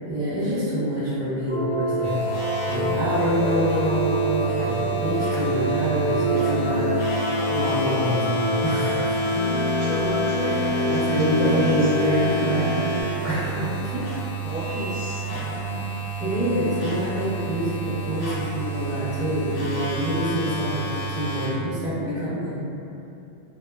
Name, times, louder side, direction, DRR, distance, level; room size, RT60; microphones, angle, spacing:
voice 1, 0.0-2.2 2.7-6.9 7.5-9.2 10.4-12.8 13.2-14.0 16.2-22.6, equal, 5° right, -10 dB, 0.4 m, -26 dB
sound 1, 1.5-13.0, equal, 30° left, 0.7 m, -25 dB
sound 2, 2.0-21.5, right 4 dB, 65° left, 0.8 m, -31 dB
voice 2, 9.5-11.9 13.2-13.5 14.4-15.9, right 1 dB, 55° right, -10 dB, 0.6 m, -33 dB
2.9 x 2.0 x 2.2 m, 2.7 s
omnidirectional pair, 1.1 m